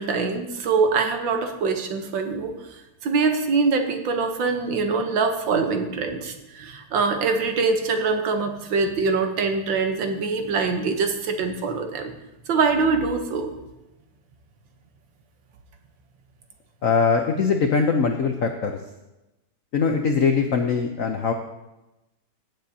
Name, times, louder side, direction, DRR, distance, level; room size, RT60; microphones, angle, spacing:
voice 1, 0.0-2.5 3.0-12.1 12.5-13.5, right 4 dB, 65° right, 5 dB, 1.6 m, -24 dB
voice 2, 16.8-18.8 19.7-21.3, left 5 dB, 80° left, 4 dB, 0.7 m, -21 dB
16.5 x 7.9 x 2.8 m, 0.98 s
omnidirectional pair, 2.3 m